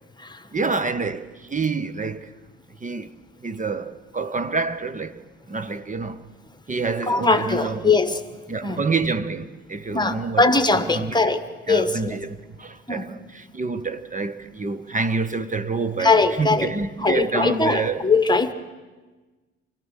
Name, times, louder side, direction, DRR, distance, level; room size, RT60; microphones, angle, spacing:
voice 1, 0.5-2.3 2.8-3.1 3.4-5.2 5.5-6.2 6.7-7.9 8.5-10.5 10.8-11.1 11.7-18.0, right 4 dB, 20° right, 0.9 m, -27 dB
voice 2, 7.1-8.2 8.6-8.8 9.9-12.2 12.9-13.0 16.0-16.7 17.0-18.5, left 3 dB, 10° left, 1.4 m, -21 dB
24.5 x 16.5 x 6.5 m
hypercardioid pair, 55°, 35 cm